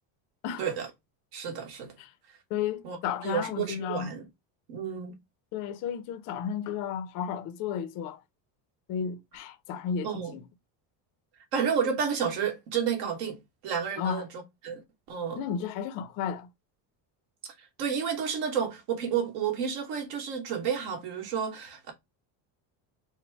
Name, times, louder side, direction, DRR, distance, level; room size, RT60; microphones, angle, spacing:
voice 1, 1.3-1.9 2.8-3.0 3.2-4.3 4.7-5.2 10.0-10.4 11.5-15.4 17.4-21.9, right 7 dB, 55° right, 1.3 m, -31 dB
voice 2, 2.5-4.1 5.5-8.2 8.9-10.4 14.0-14.2 15.4-16.5, left 8 dB, 40° left, 0.5 m, -33 dB
4.0 x 2.1 x 4.4 m
cardioid pair, 175°, 49 cm